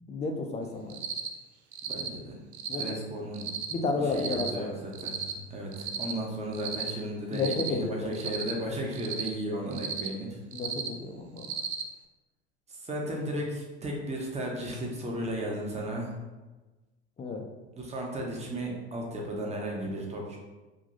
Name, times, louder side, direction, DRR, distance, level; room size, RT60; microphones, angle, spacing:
voice 1, 0.1-1.0 2.7-2.8 3.7-4.7 7.3-8.1 10.5-11.5 17.2-17.4, left 3 dB, 20° left, 3 dB, 0.5 m, -32 dB
Cricket, 0.9-1.3 1.7-2.1 2.5-2.9 3.3-3.7 4.1-4.5 4.9-5.3 5.7-6.1 6.5-6.9 7.3-7.7 8.1-8.5 8.9-9.3 9.7-10.1 10.5-10.9 11.4-11.8, right 7 dB, 70° right, 0.5 m, -34 dB
voice 2, 1.9-2.4 2.7-3.5 4.0-10.4 12.7-16.1 17.8-20.4, right 1 dB, 20° right, -1 dB, 1.0 m, -35 dB
5.0 x 2.6 x 2.6 m, 1.2 s
figure-of-eight pair, 75°, 33 cm